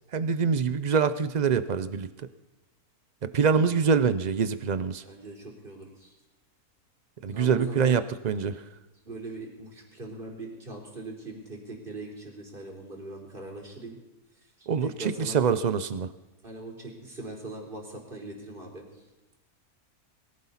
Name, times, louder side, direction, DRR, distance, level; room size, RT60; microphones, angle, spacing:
voice 1, 0.1-2.1 3.2-5.0 7.2-8.6 14.7-16.1, right 6 dB, 65° right, 13 dB, 0.4 m, -25 dB
voice 2, 4.9-6.2 7.3-8.0 9.1-14.0 14.6-15.4 16.4-19.0, right 2 dB, 35° right, 0 dB, 3.9 m, -41 dB
21.5 x 16.0 x 4.1 m, 1.1 s
omnidirectional pair, 1.6 m